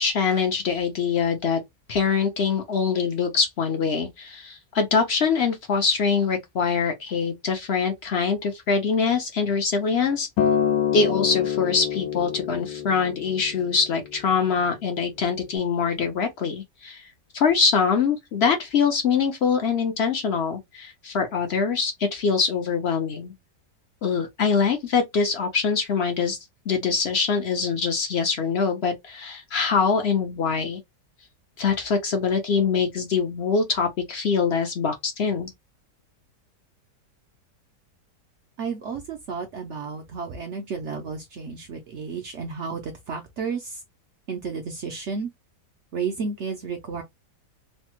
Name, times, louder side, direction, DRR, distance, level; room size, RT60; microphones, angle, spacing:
voice 1, 0.0-1.6 1.9-10.3 10.9-17.0 17.3-23.3 24.0-26.4 26.7-30.8 31.6-35.5, left 5 dB, 60° left, 0.6 m, -24 dB
Acoustic guitar, 10.4-14.7 15.5-15.6, left 9 dB, 85° left, 1.3 m, -26 dB
voice 2, 38.6-43.8 44.3-45.3 45.9-47.0, right 5 dB, 70° right, 0.6 m, -32 dB
3.2 x 2.0 x 2.9 m
omnidirectional pair, 1.8 m